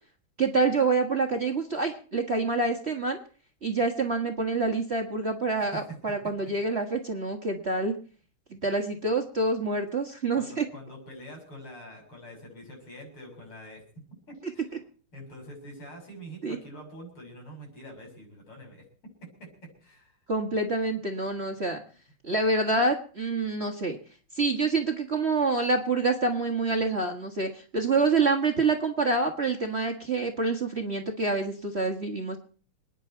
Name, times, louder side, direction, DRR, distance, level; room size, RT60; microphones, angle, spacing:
voice 1, 0.4-3.2 3.6-7.9 8.5-10.6 16.4-16.6 20.3-21.8 22.2-24.0 24.3-32.4, right 3 dB, 30° right, 3 dB, 1.6 m, -27 dB
voice 2, 10.4-13.8 14.3-14.7 15.1-18.8 19.2-20.2, equal, 75° left, 1 dB, 7.4 m, -45 dB
27.5 x 9.9 x 4.5 m, 0.41 s
omnidirectional pair, 2.4 m